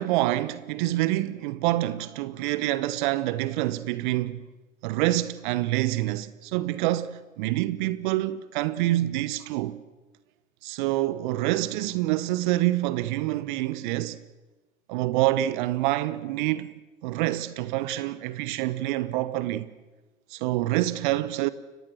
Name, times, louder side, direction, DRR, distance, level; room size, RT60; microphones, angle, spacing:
voice 1, 0.0-4.5 4.8-9.8 10.6-14.2 14.9-16.7 17.0-19.7 20.3-21.5, right 16 dB, 40° right, 0.9 m, -26 dB
29.5 x 16.0 x 7.7 m
figure-of-eight pair, 110°, 39 cm